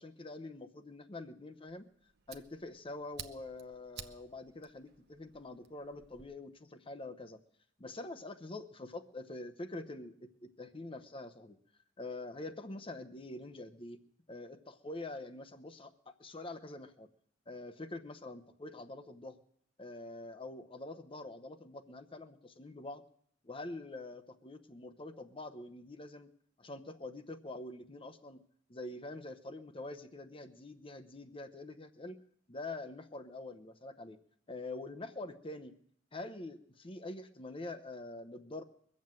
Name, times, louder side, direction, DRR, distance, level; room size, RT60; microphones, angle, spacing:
voice 1, 0.0-1.9 2.3-7.4 7.8-11.6 12.0-14.0 14.3-17.1 17.5-19.4 19.8-23.0 23.4-26.3 26.6-28.4 28.7-32.2 32.5-34.2 34.5-35.7 36.1-38.6, left 2 dB, 25° left, 9 dB, 0.8 m, -45 dB
Fire, 1.7-6.3, right 8 dB, 55° right, 0.8 m, -53 dB
22.0 x 7.5 x 7.7 m, 0.67 s
head